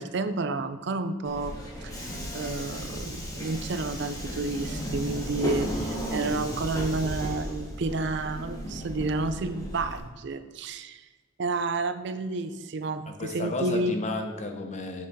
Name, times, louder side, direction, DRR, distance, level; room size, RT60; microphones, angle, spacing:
voice 1, 0.0-1.6 1.8-11.1 11.4-14.0, right 3 dB, 60° right, 11 dB, 0.5 m, -30 dB
Subway metro underground, 1.2-10.0, equal, 20° left, 1.7 m, -34 dB
voice 2, 13.1-15.1, left 2 dB, 35° left, 5 dB, 0.9 m, -33 dB
7.5 x 6.0 x 4.1 m, 1.3 s
head